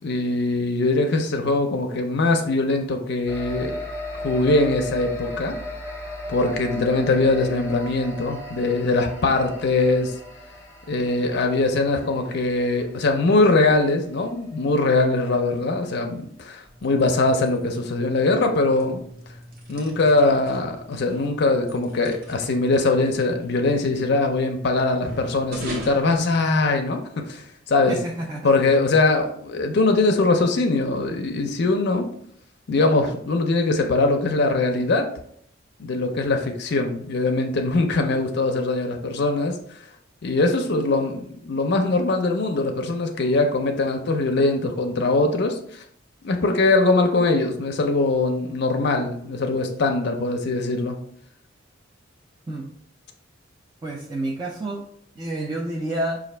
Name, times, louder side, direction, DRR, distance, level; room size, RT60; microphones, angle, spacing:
voice 1, 0.0-3.7 4.1-5.5 6.3-10.1 10.9-19.0 19.7-28.0 28.4-32.0 32.7-35.1 35.8-39.6 40.2-41.2 41.5-45.8 46.2-51.0, left 2 dB, 60° left, 4 dB, 0.5 m, -22 dB
sound 1, 3.3-15.1, left 1 dB, 15° left, 0.7 m, -37 dB
sound 2, 16.6-27.1, equal, 50° right, 0.8 m, -41 dB
voice 2, 27.9-28.5 52.5-52.7 53.8-54.8 55.1-56.2, right 1 dB, 20° right, -3 dB, 0.5 m, -29 dB
4.9 x 2.5 x 3.2 m, 0.66 s
head